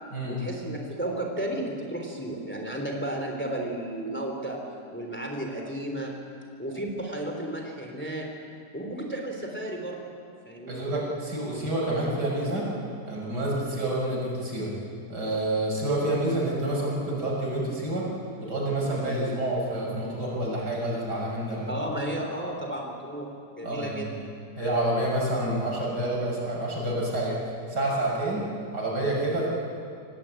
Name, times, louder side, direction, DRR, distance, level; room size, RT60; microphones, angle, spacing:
voice 1, 0.3-4.6 4.9-6.1 6.6-8.3 8.7-10.0 10.4-10.9 21.7-24.3, right 1 dB, 5° left, 1 dB, 3.2 m, -33 dB
voice 2, 10.7-12.6 13.1-14.7 15.1-18.1 18.4-21.7 23.6-24.1 24.6-27.4 27.7-28.4 28.7-29.5, right 1 dB, 75° right, -3 dB, 7.1 m, -28 dB
27.0 x 18.5 x 9.0 m, 2.4 s
omnidirectional pair, 1.8 m